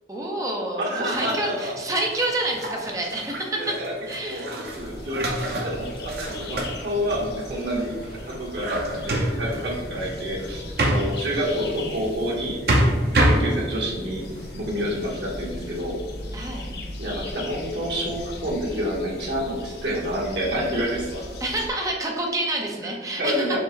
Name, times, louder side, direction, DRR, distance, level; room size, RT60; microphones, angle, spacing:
voice 1, 0.1-3.8 4.1-4.5 11.4-11.6 16.3-16.7 21.4-23.6, right 1 dB, 20° right, 0 dB, 0.6 m, -28 dB
voice 2, 0.7-1.7 3.6-3.9 4.2-7.9 8.3-12.6 13.2-14.3 14.5-16.0 17.0-21.3 22.8-23.6, equal, 80° right, -3 dB, 1.1 m, -28 dB
sound 1, 1.1-12.1 12.4-13.8 14.4-15.1, right 1 dB, 60° right, 0.7 m, -28 dB
sound 2, 4.6-21.7, left 1 dB, 65° left, 0.6 m, -39 dB
sound 3, 8.9-21.4, left 1 dB, 30° left, 0.7 m, -43 dB
4.7 x 2.1 x 3.8 m, 1.4 s
head